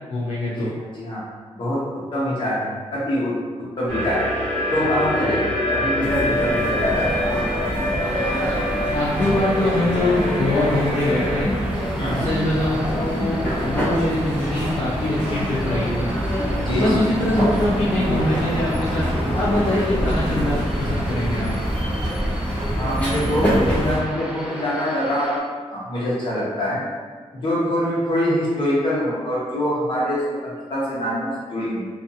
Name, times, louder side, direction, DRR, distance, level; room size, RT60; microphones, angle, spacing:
voice 1, 0.1-0.7 8.9-11.5 12.1-16.1 16.8-19.0 19.3-21.5, left 1 dB, 65° left, -9 dB, 0.5 m, -23 dB
voice 2, 1.5-1.8 2.1-3.4 3.8-4.3 4.7-7.1 12.0-12.3 16.6-17.0 22.8-26.8 27.3-31.8, left 1 dB, 45° left, -7 dB, 0.9 m, -24 dB
sound 1, 3.9-11.4, left 1 dB, 50° right, 0.7 m, -25 dB
sound 2, 6.0-24.0, equal, 10° left, 0.8 m, -25 dB
sound 3, 8.0-25.4, equal, 5° right, 0.4 m, -36 dB
2.6 x 2.4 x 2.6 m, 1.5 s
wide cardioid pair, 135°, 12 cm